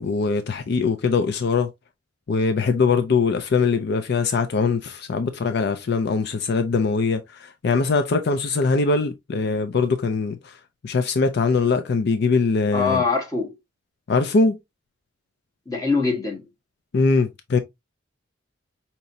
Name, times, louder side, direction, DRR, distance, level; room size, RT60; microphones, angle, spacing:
voice 1, 0.0-1.7 2.3-10.4 10.8-13.0 14.1-14.6 16.9-17.6, left 4 dB, 60° left, 0.4 m, -22 dB
voice 2, 12.7-13.5 15.7-16.5, left 4 dB, 20° left, 1.2 m, -23 dB
5.3 x 2.9 x 2.6 m
head